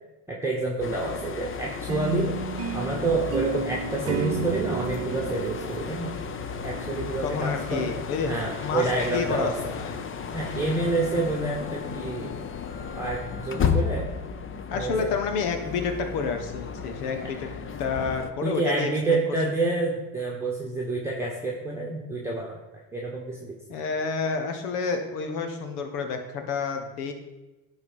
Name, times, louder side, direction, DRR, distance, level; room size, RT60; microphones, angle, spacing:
voice 1, 0.3-2.3 2.7-6.2 6.6-7.9 8.3-9.5 10.3-12.4 13.0-14.1 14.7-15.1 18.4-22.6 22.9-23.6, right 2 dB, 5° right, -3 dB, 1.3 m, -28 dB
sound 1, 0.8-18.3, left 6 dB, 30° left, 0.7 m, -33 dB
sound 2, 1.9-7.0, right 7 dB, 35° right, 0.7 m, -33 dB
voice 2, 7.2-8.3 8.6-10.0 14.7-17.5 17.8-19.2 23.7-27.1, left 5 dB, 90° left, 6 dB, 1.3 m, -29 dB
11.0 x 3.9 x 5.3 m, 1.1 s
supercardioid pair, 95°, 45 cm